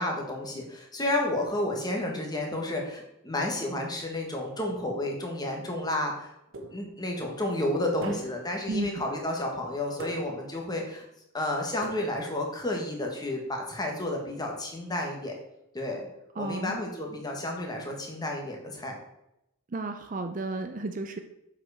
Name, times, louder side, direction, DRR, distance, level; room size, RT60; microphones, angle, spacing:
voice 1, 0.0-6.3 6.7-11.0 11.3-15.3 15.7-16.0 16.4-18.9, left 1 dB, 20° left, 1 dB, 1.4 m, -31 dB
sound 1, 6.5-7.1 8.0-8.6 10.0-10.6 11.8-12.5, right 2 dB, 70° right, 1.2 m, -42 dB
voice 2, 8.7-9.1 16.4-16.8 19.7-21.2, right 3 dB, 40° right, 7 dB, 0.5 m, -33 dB
7.3 x 4.9 x 4.8 m, 0.84 s
head